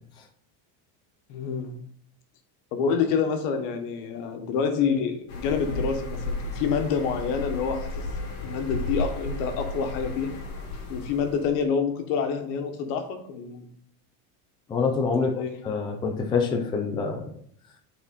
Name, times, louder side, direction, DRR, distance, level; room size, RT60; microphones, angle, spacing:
voice 1, 1.3-1.8 2.7-7.9 8.4-10.3 10.9-13.7 15.2-15.6, left 6 dB, 65° left, 6 dB, 1.4 m, -27 dB
sound 1, 5.3-11.6, left 1 dB, 35° left, 1.8 m, -33 dB
voice 2, 14.7-15.3 15.6-17.3, left 5 dB, 10° left, 2 dB, 0.4 m, -26 dB
8.2 x 4.3 x 4.2 m, 0.64 s
cardioid pair, 155°, 49 cm